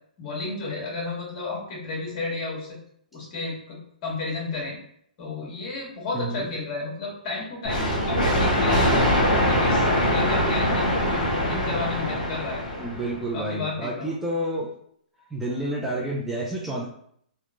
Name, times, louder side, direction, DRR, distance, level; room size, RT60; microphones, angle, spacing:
voice 1, 0.2-2.7 3.1-4.8 5.2-9.0 9.4-12.6 13.3-14.2, left 3 dB, 40° left, -3 dB, 1.3 m, -32 dB
voice 2, 6.1-6.5 12.8-14.7 15.3-16.8, right 1 dB, 5° right, -5 dB, 0.4 m, -29 dB
sound 1, 7.6-13.2, equal, 65° left, 1.0 m, -23 dB
2.8 x 2.1 x 2.5 m, 0.68 s
hypercardioid pair, 125°, 5 cm